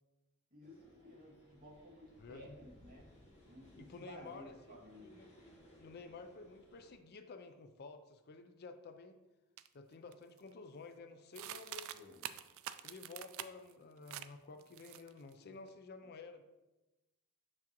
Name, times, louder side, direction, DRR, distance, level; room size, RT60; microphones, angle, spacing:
voice 1, 0.5-3.0 3.5-5.1 11.9-12.2, equal, 40° right, -4 dB, 1.7 m, -55 dB
sound 1, 0.6-6.9, equal, 30° left, 1.5 m, -62 dB
voice 2, 2.2-2.6 3.8-5.3 5.8-9.2 9.7-12.2 12.8-16.4, left 4 dB, 45° left, 8 dB, 0.4 m, -52 dB
sound 2, 9.6-9.7 10.1-10.5 11.4-13.7 14.1-14.3 14.6-15.3, right 12 dB, 65° right, 0.3 m, -46 dB
6.3 x 5.9 x 2.9 m, 1.1 s
head